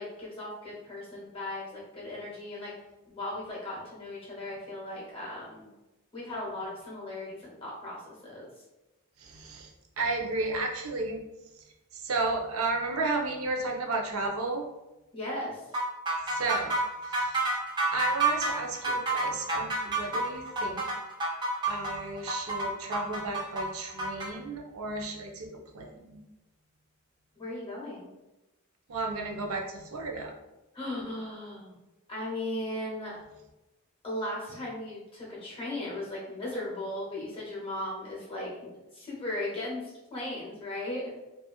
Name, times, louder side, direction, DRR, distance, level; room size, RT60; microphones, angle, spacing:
voice 1, 0.0-2.7 3.1-5.7 6.1-8.5 15.1-15.6 27.4-28.1 30.7-31.7 32.1-33.2 34.0-38.5 38.9-41.1, left 1 dB, 25° left, -5 dB, 0.7 m, -37 dB
voice 2, 9.2-9.7 10.0-11.2 11.9-14.6 16.3-16.7 17.0-17.4 17.9-20.8 21.7-25.5 25.7-26.2 28.9-30.3, right 3 dB, 90° right, 1 dB, 0.5 m, -33 dB
sound 1, 15.7-24.3, right 3 dB, 20° right, 0.4 m, -29 dB
2.8 x 2.3 x 2.3 m, 1.0 s
head